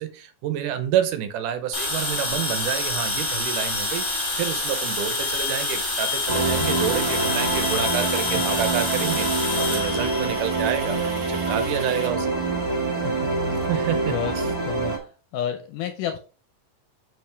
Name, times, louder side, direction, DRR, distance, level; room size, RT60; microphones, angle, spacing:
voice 1, 0.0-12.3 13.7-14.5, right 10 dB, 75° right, 2.2 m, -29 dB
sound 1, 1.7-11.0, left 3 dB, 30° left, 1.6 m, -27 dB
sound 2, 3.0-12.1, right 4 dB, 50° right, 1.9 m, -39 dB
sound 3, 6.3-15.0, right 3 dB, 20° right, 1.0 m, -25 dB
voice 2, 13.2-13.6 14.1-14.3 14.7-16.2, left 10 dB, 80° left, 2.1 m, -31 dB
7.6 x 4.9 x 3.4 m
omnidirectional pair, 3.8 m